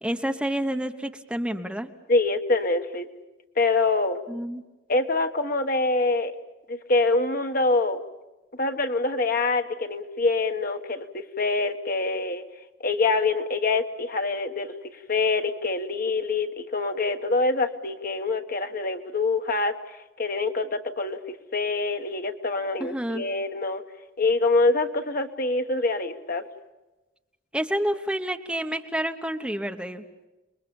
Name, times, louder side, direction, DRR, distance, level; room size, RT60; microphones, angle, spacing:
voice 1, 0.0-1.9 4.3-4.6 22.8-23.2 27.5-30.0, right 1 dB, 5° right, 5 dB, 1.1 m, -29 dB
voice 2, 2.1-3.1 3.6-4.2 4.9-6.3 6.7-8.0 8.6-12.4 12.8-14.7 15.1-23.8 24.2-26.4, left 3 dB, 50° left, 6 dB, 1.4 m, -25 dB
29.5 x 21.5 x 7.1 m, 1.1 s
head